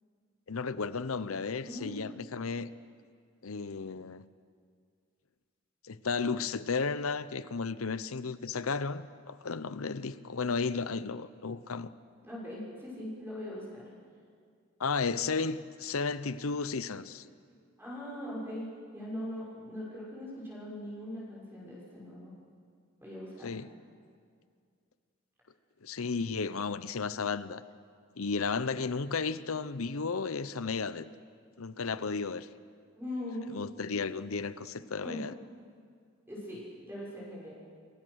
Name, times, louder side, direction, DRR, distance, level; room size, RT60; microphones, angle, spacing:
voice 1, 0.5-2.7 3.4-4.3 5.8-11.9 14.8-17.2 23.4-23.7 25.8-27.6 28.2-31.1 31.6-32.5 33.5-35.3, left 4 dB, 85° left, 0.8 m, -33 dB
voice 2, 1.6-1.9 12.2-13.8 17.8-22.3 23.0-23.6 32.9-33.5 35.0-35.2 36.3-37.5, left 1 dB, 10° right, 6.2 m, -41 dB
27.0 x 23.0 x 6.4 m
head